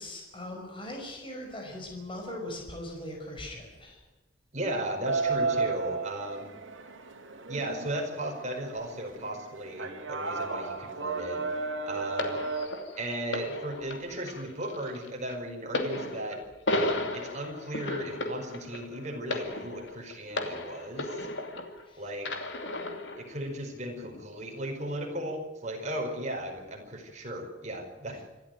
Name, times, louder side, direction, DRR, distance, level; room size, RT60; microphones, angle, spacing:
voice 1, 0.0-4.0 21.9-22.0, left 1 dB, 25° left, 1 dB, 5.3 m, -40 dB
voice 2, 4.5-6.5 7.5-12.4 13.0-16.4 16.7-21.3 22.0-22.3 23.2-28.2, right 1 dB, 35° right, 2 dB, 4.8 m, -36 dB
sound 1, 5.0-12.7, right 4 dB, 75° right, 2.8 m, -33 dB
sound 2, 12.2-21.8 22.2-23.3 24.0-24.2, left 1 dB, 65° left, 2.8 m, -34 dB
26.5 x 13.5 x 9.2 m, 1.1 s
head